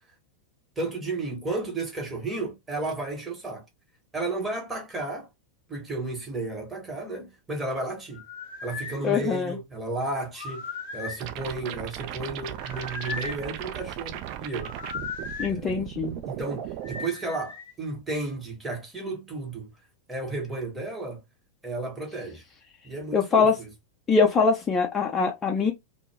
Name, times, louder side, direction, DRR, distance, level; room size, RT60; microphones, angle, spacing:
voice 1, 0.8-3.6 4.1-5.3 5.7-8.2 8.6-10.6 10.9-14.7 15.5-15.9 16.3-19.7 20.1-21.2 21.6-22.4 22.8-23.7 25.6-25.7, right 2 dB, 15° right, 1.0 m, -33 dB
sound 1, 8.1-9.0 10.3-11.3 12.6-13.4 14.6-15.5 16.8-17.7, left 4 dB, 60° left, 0.8 m, -37 dB
voice 2, 9.0-9.5 15.4-16.2 23.1-23.5 24.1-25.7, left 5 dB, 20° left, 0.5 m, -23 dB
sound 2, 11.2-17.0, right 12 dB, 45° right, 0.4 m, -37 dB
2.1 x 2.0 x 3.3 m
figure-of-eight pair, 90°, 0 cm